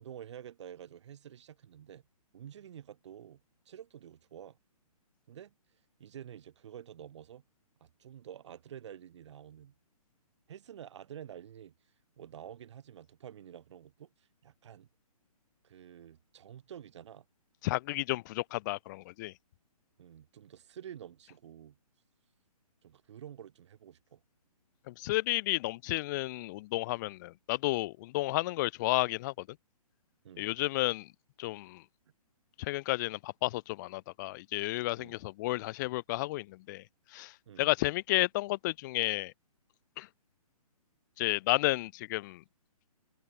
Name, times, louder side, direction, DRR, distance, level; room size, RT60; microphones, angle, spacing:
voice 1, 0.0-2.1 2.3-4.6 5.3-5.5 6.0-7.4 7.8-9.7 10.5-11.7 12.2-14.9 15.6-17.2 20.0-21.8 22.8-24.2 30.2-30.5 35.0-35.1 37.5-37.7, right 10 dB, 45° right, 4.9 m, -49 dB
voice 2, 17.6-19.3 24.9-29.6 30.4-31.1 31.4-31.8 32.6-36.8 37.1-39.3 40.0-40.1 41.2-42.4, left 19 dB, 30° left, 1.5 m, -32 dB
figure-of-eight pair, 135°, 20 cm